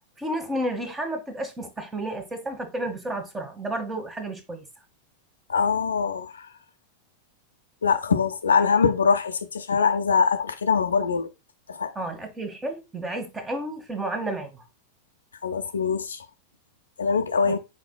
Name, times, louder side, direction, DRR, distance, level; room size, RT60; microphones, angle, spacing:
voice 1, 0.2-4.6 11.9-14.6 17.4-17.5, right 1 dB, 15° right, 1.1 m, -31 dB
voice 2, 5.5-6.3 7.8-11.3 11.7-11.9 15.4-16.2 17.0-17.6, left 5 dB, 70° left, 0.5 m, -23 dB
4.8 x 4.3 x 2.2 m
figure-of-eight pair, 90°, 0 cm